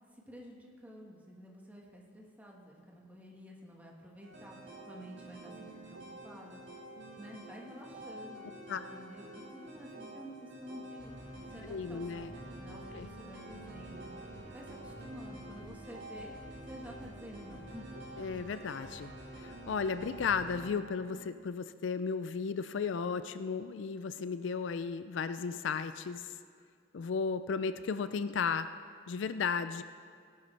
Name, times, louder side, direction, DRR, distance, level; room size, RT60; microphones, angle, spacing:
voice 1, 0.1-6.6 7.0-8.5 8.7-11.1 11.5-14.1 14.4-16.3 16.6-17.9, equal, 10° right, -2 dB, 1.5 m, -50 dB
sound 1, 4.2-20.7, equal, 60° right, 3.3 m, -49 dB
sound 2, 4.6-21.4, right 3 dB, 75° right, 0.5 m, -52 dB
voice 2, 11.6-12.3 13.0-13.1 18.2-26.3 26.9-28.7 29.1-29.8, left 5 dB, 70° left, 12 dB, 0.4 m, -34 dB
18.0 x 11.0 x 3.3 m, 2.1 s
head